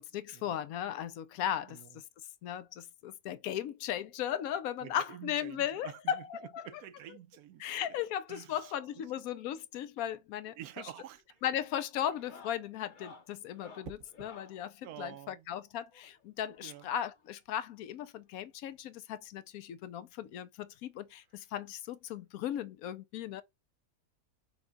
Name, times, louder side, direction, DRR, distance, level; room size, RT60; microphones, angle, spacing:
voice 1, 0.0-2.0 2.4-6.6 7.6-10.6 11.4-23.4, left 10 dB, 80° left, 1.0 m, -37 dB
voice 2, 1.7-2.0 4.8-6.3 6.6-8.0 8.3-9.1 10.6-11.5 14.8-15.5 16.6-16.9, right 12 dB, 85° right, 1.1 m, -49 dB
sound 1, 10.5-10.9 11.2-11.5 12.1-14.6 15.9-17.3 18.3-18.4 18.6-18.8 19.2-19.3 20.6-20.7 22.0-22.1, left 4 dB, 45° left, 0.7 m, -55 dB
sound 2, 11.0-11.4 13.8-14.4 16.3-16.6, right 5 dB, 65° right, 1.4 m, -50 dB
5.9 x 2.3 x 3.9 m
omnidirectional pair, 1.5 m